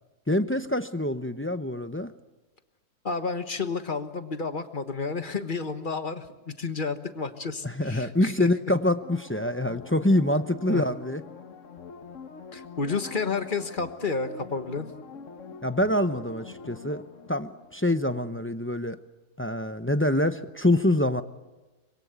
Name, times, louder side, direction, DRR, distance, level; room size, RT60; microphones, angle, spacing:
voice 1, 0.3-2.1 7.6-11.2 15.6-17.0 17.3-19.0 19.4-21.2, left 1 dB, 15° left, 10 dB, 0.5 m, -25 dB
voice 2, 3.0-8.5 10.7-10.8 12.5-14.9, left 4 dB, 35° left, 9 dB, 1.4 m, -31 dB
sound 1, 9.0-18.4 18.8-18.9, left 5 dB, 55° left, 1.4 m, -44 dB
25.0 x 22.0 x 8.2 m, 1.1 s
omnidirectional pair, 1.7 m